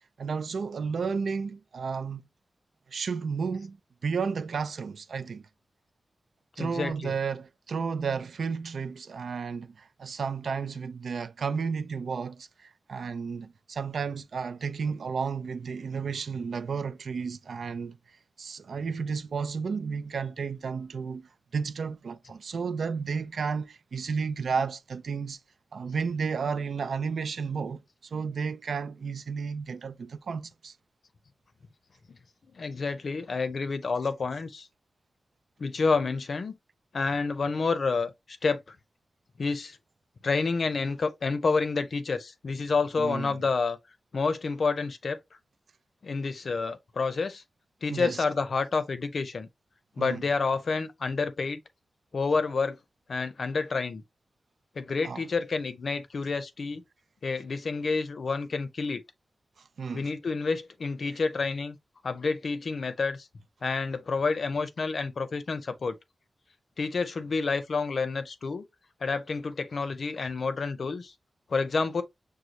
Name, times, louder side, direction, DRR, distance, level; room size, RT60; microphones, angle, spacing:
voice 1, 0.2-2.3 2.9-5.4 6.6-18.0 18.4-25.4 25.7-30.8 43.0-43.4 47.9-48.2 50.0-50.3 55.0-55.2 59.6-60.1, right 5 dB, 80° right, 0.4 m, -32 dB
voice 2, 6.6-7.1 32.5-34.7 35.6-36.6 36.9-38.1 38.4-38.8 39.4-39.8 40.2-43.8 44.1-45.2 46.0-47.4 47.8-49.5 50.0-51.6 52.1-52.8 53.1-54.0 54.8-56.8 57.2-59.0 59.9-61.8 62.0-63.3 63.6-65.9 66.8-68.6 69.0-71.1 71.5-72.0, left 4 dB, 60° left, 0.6 m, -29 dB
6.4 x 2.3 x 2.8 m
wide cardioid pair, 135°, 0 cm